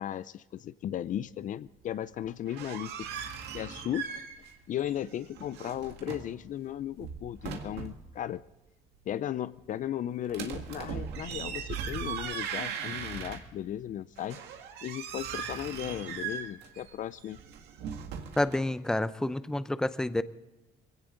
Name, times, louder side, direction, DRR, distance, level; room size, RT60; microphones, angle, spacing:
voice 1, 0.0-3.1 3.5-4.1 4.7-8.4 9.1-14.4 14.8-17.4, left 11 dB, 50° left, 16 dB, 0.5 m, -36 dB
sound 1, 2.3-4.5 4.8-6.4 6.8-8.1 10.3-13.7 14.2-18.6, right 7 dB, 85° right, 1.9 m, -39 dB
voice 2, 18.4-20.2, left 1 dB, 5° left, 14 dB, 0.6 m, -29 dB
21.5 x 17.0 x 3.9 m, 1.0 s
cardioid pair, 110°, 17 cm